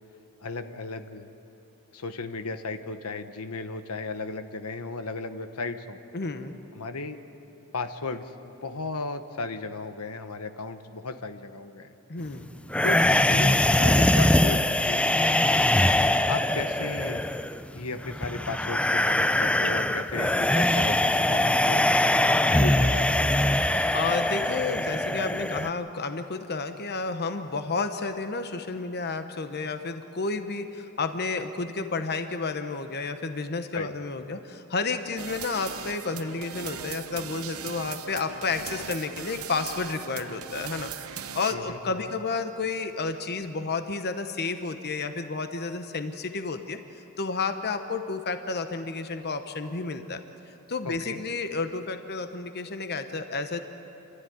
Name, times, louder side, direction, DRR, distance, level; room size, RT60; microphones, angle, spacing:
voice 1, 0.4-1.3 1.9-6.0 6.7-7.2 7.7-11.9 12.8-13.0 13.3-15.5 16.3-17.2 17.7-21.9 22.5-23.3 33.7-33.9 41.5-42.1 50.8-51.2, left 3 dB, 85° left, 8 dB, 1.1 m, -35 dB
voice 2, 6.1-6.6 12.1-12.5 23.9-40.9 41.3-46.8 47.2-50.2 50.7-53.6, left 4 dB, 50° left, 8 dB, 1.0 m, -31 dB
sound 1, 12.7-25.7, left 1 dB, 5° left, 0.5 m, -23 dB
sound 2, 35.2-41.5, right 8 dB, 70° right, 0.9 m, -39 dB
29.5 x 13.0 x 9.5 m, 3.0 s
head